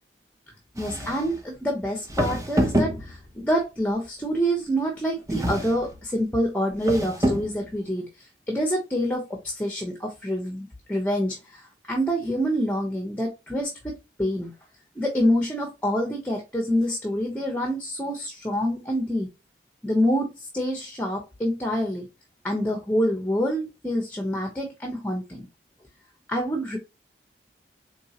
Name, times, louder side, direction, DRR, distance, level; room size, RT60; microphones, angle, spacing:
voice 1, 0.8-14.5 15.0-19.3 19.8-22.1 22.4-25.5 26.3-26.8, equal, 10° left, 0.8 m, -27 dB
sound 1, 0.8-1.4 2.1-3.4 5.3-6.0 6.7-7.6, equal, 20° right, 0.7 m, -26 dB
4.4 x 3.2 x 2.8 m
head